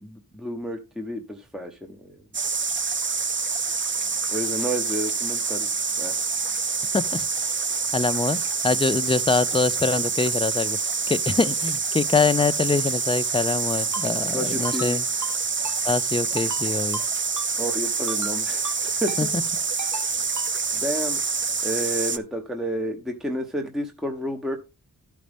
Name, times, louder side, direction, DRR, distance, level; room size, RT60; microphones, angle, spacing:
voice 1, 0.0-2.2 4.3-5.7 6.0-6.2 14.3-15.0 17.6-19.3 19.9-20.1 20.7-21.2 21.6-24.6, equal, ahead, 0.9 m, -30 dB
sound 1, 2.3-22.2, right 5 dB, 30° right, 0.6 m, -26 dB
voice 2, 6.9-7.5 7.9-8.4 8.6-10.8 11.1-15.0 15.8-17.0 19.2-19.4, left 4 dB, 15° left, 0.4 m, -24 dB
Ringtone, 13.9-14.1 14.6-14.9 15.2-15.4 15.6-15.8 16.4-16.6 16.9-17.1 17.4-17.5 18.1-18.3 18.6-18.8 19.1-19.2 19.8-20.1 20.4-20.5, right 4 dB, 50° right, 1.0 m, -35 dB
12.5 x 5.0 x 3.4 m
wide cardioid pair, 70°, 39 cm